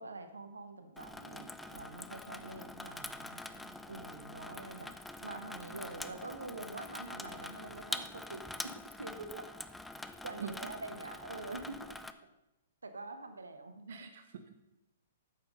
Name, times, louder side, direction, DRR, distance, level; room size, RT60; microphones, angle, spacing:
voice 1, 0.0-3.0 3.9-4.9 5.2-9.4 10.2-12.0 12.8-14.1, right 2 dB, 85° right, 8 dB, 1.1 m, -46 dB
Water tap faucet / Sink (filling or washing), 1.0-12.1, left 2 dB, 5° left, 0.5 m, -45 dB
voice 2, 2.9-3.8 4.8-5.0 9.2-9.4 10.4-10.5 13.9-14.6, right 6 dB, 60° right, 7 dB, 0.8 m, -47 dB
8.7 x 7.7 x 5.3 m, 0.94 s
figure-of-eight pair, 115°, 0 cm